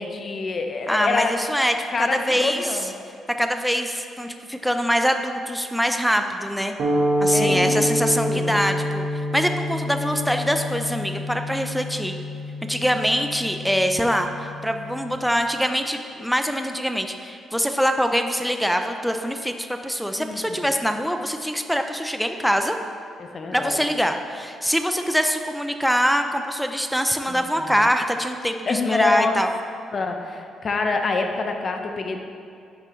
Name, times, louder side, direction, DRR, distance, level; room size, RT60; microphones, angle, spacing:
voice 1, 0.0-1.3 1.9-2.9 7.3-7.8 8.2-8.6 20.2-20.8 23.2-23.9 27.3-27.9 28.6-29.4 29.9-32.2, left 4 dB, 35° left, 4 dB, 0.7 m, -27 dB
voice 2, 0.9-2.8 3.3-6.7 7.2-9.1 9.3-12.1 12.7-22.8 23.5-29.5, equal, ahead, 6 dB, 0.4 m, -24 dB
sound 1, 6.8-15.2, equal, 50° right, 1.1 m, -27 dB
10.5 x 6.6 x 3.1 m, 2.5 s
cardioid pair, 135°, 0 cm